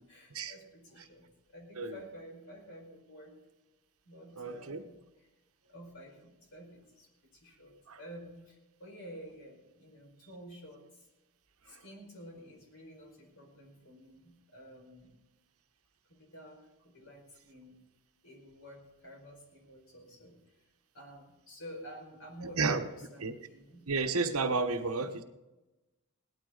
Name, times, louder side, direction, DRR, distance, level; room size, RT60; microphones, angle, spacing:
voice 1, 0.0-3.4 4.0-5.3 5.7-11.1 11.6-15.1 16.1-17.8 18.2-20.4 20.9-23.9 24.8-25.1, equal, 70° left, 1 dB, 4.9 m, -51 dB
voice 2, 4.4-4.8 7.9-8.0 22.6-22.8 23.2-23.3 23.9-25.2, right 4 dB, 75° right, 7 dB, 1.1 m, -31 dB
18.0 x 12.5 x 3.9 m, 1.0 s
head